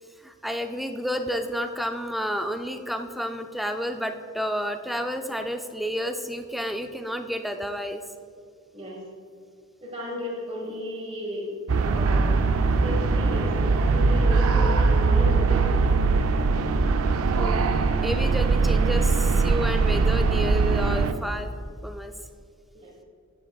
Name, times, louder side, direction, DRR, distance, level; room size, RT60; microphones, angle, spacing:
voice 1, 0.2-8.0 17.3-17.6 18.0-21.5 21.8-22.1, equal, ahead, 6 dB, 0.3 m, -30 dB
voice 2, 9.8-12.4 12.8-15.8 22.7-22.9, left 1 dB, 30° right, -3 dB, 1.4 m, -34 dB
sound 1, 11.7-21.1, right 4 dB, 75° right, 0.4 m, -21 dB
sound 2, 12.5-19.1, left 1 dB, 40° left, 0.9 m, -42 dB
10.5 x 8.3 x 2.3 m, 2.2 s
head